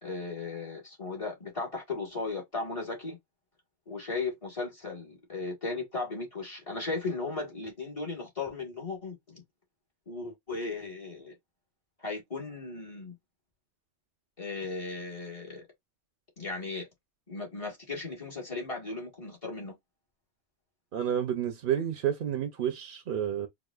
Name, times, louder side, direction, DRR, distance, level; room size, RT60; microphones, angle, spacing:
voice 1, 0.0-3.2 3.9-9.4 10.1-11.3 12.0-13.1 14.4-15.6 16.4-16.9 17.3-19.7, left 3 dB, 35° left, 1.6 m, -36 dB
voice 2, 20.9-23.5, right 9 dB, 65° right, 0.8 m, -30 dB
4.8 x 2.5 x 2.3 m
omnidirectional pair, 1.0 m